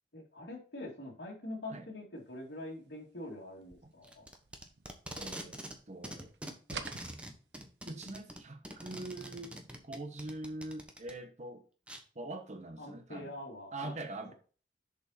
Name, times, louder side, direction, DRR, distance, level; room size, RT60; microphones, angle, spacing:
voice 1, 0.1-4.3 12.8-13.9, left 1 dB, 85° left, 2.5 m, -44 dB
sound 1, 3.6-5.8 6.1-7.9, right 5 dB, 75° right, 0.9 m, -48 dB
Packing tape duct tape, 4.0-5.8 6.0-11.1 11.9-12.0, right 1 dB, 5° right, 1.0 m, -45 dB
voice 2, 5.2-5.6 5.9-6.3 7.8-11.6 12.1-13.4 13.7-14.3, right 2 dB, 40° right, 1.1 m, -43 dB
6.8 x 5.4 x 4.3 m
head